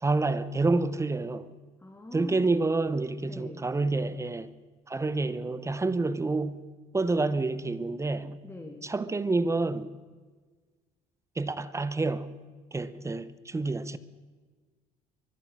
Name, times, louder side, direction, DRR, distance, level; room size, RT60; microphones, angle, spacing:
voice 1, 0.0-1.5 2.1-4.5 4.9-6.6 6.9-8.4 8.8-9.9 11.4-12.3 12.7-14.0, right 3 dB, 15° right, 0.7 m, -28 dB
voice 2, 1.8-2.6 3.3-3.6 8.4-8.9, left 2 dB, 10° left, 1.9 m, -43 dB
24.0 x 9.0 x 6.3 m
cardioid pair, 110°, 17 cm